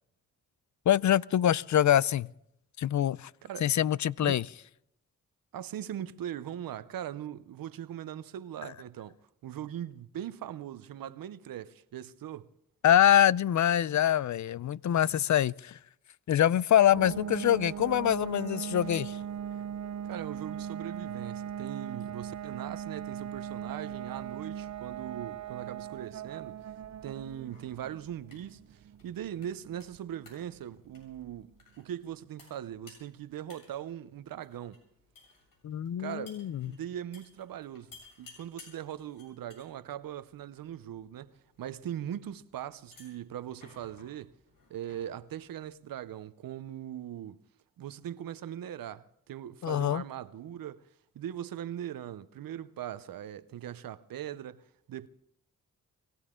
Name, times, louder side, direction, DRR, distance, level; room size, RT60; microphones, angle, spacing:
voice 1, 0.9-2.3 2.8-3.3 3.6-4.4 12.8-15.8 16.3-19.2 35.6-36.7 49.6-50.0, left 11 dB, 60° left, 0.5 m, -25 dB
voice 2, 5.5-9.2 9.4-12.5 20.0-26.6 27.0-31.5 31.8-34.8 36.0-44.4 44.7-47.4 47.8-50.8 51.1-55.1, right 10 dB, 85° right, 0.7 m, -40 dB
sound 1, 16.9-31.5, right 9 dB, 55° right, 0.6 m, -40 dB
sound 2, 27.4-46.3, left 3 dB, 85° left, 7.5 m, -60 dB
23.5 x 16.0 x 3.7 m
cardioid pair, 60°, 33 cm